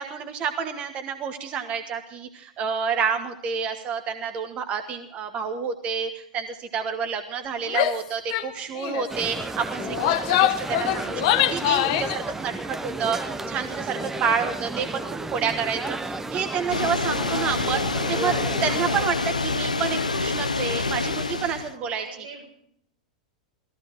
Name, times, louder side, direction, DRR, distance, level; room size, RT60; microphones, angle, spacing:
voice 1, 0.0-15.0 15.3-18.3 18.6-22.1, right 6 dB, 35° right, 7 dB, 1.3 m, -29 dB
Female speech woman speaking / Yell, 7.7-8.0 8.3-8.5 8.8-9.1 9.8-12.2, left 12 dB, 50° left, 1.0 m, -23 dB
sound 1, 9.1-19.1, right 2 dB, 10° right, 0.7 m, -33 dB
voice 2, 16.5-17.0 21.7-22.4, right 3 dB, 75° right, -1 dB, 6.3 m, -44 dB
Water, 16.7-21.7, left 3 dB, 90° left, 0.7 m, -27 dB
17.5 x 15.0 x 4.6 m, 0.72 s
figure-of-eight pair, 95°, 4 cm